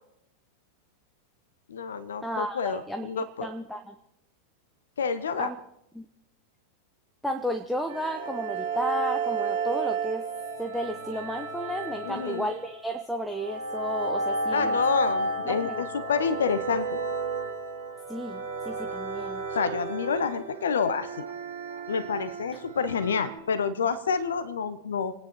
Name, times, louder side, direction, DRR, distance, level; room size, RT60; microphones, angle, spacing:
voice 1, 1.7-3.5 5.0-5.5 12.0-12.5 14.5-17.0 19.5-21.2 21.9-25.1, left 6 dB, 65° left, 13 dB, 1.0 m, -28 dB
voice 2, 2.2-3.9 5.4-5.6 5.9-6.1 7.2-10.3 10.6-14.8 15.4-15.8 18.1-19.4, equal, ahead, 4 dB, 1.0 m, -33 dB
sound 1, 7.9-23.4, right 3 dB, 75° right, 3.3 m, -32 dB
27.5 x 9.7 x 4.5 m, 0.79 s
figure-of-eight pair, 90°, 0 cm